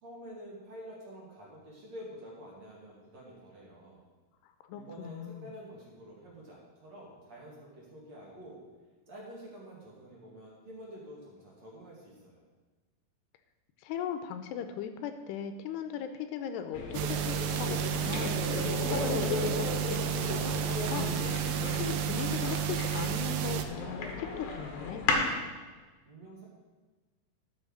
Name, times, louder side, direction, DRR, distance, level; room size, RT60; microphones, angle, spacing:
voice 1, 0.0-4.0 4.7-8.6 9.1-12.4 26.1-26.5, equal, 45° right, -5 dB, 3.2 m, -48 dB
voice 2, 4.7-5.5 13.8-21.1 21.8-25.1, left 8 dB, 80° left, 8 dB, 2.7 m, -38 dB
sound 1, 16.7-25.3, left 4 dB, 65° left, 2.9 m, -35 dB
sound 2, 16.9-23.7, right 10 dB, 80° right, 2.7 m, -32 dB
12.5 x 6.4 x 6.4 m, 1.3 s
omnidirectional pair, 4.9 m